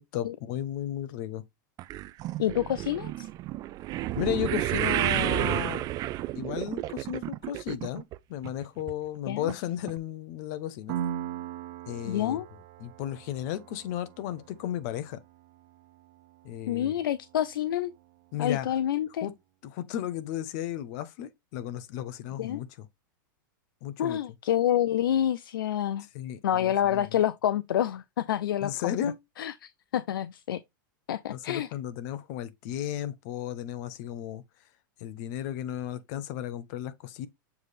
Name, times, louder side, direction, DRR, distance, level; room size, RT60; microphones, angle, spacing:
voice 1, 0.0-1.4 4.2-5.9 6.3-8.0 8.3-11.0 11.9-12.4 12.8-15.2 16.4-16.9 18.3-18.7 19.2-19.3 19.6-22.9 23.8-24.2 26.1-27.2 28.6-29.2 31.3-34.4 35.0-37.3, left 11 dB, 55° left, 0.8 m, -34 dB
sound 1, 1.8-8.2 8.4-8.9 9.5-9.6 9.9-10.0, right 15 dB, 35° right, 0.4 m, -31 dB
voice 2, 2.4-3.3 9.3-9.5 12.0-12.5 16.7-17.9 18.4-19.3 22.4-22.6 24.0-26.1 26.4-28.9 29.4-30.6 31.1-31.7, left 11 dB, 90° left, 0.4 m, -28 dB
Piano, 10.9-18.3, right 10 dB, 55° right, 1.3 m, -41 dB
7.1 x 3.3 x 4.1 m
hypercardioid pair, 130°, 11 cm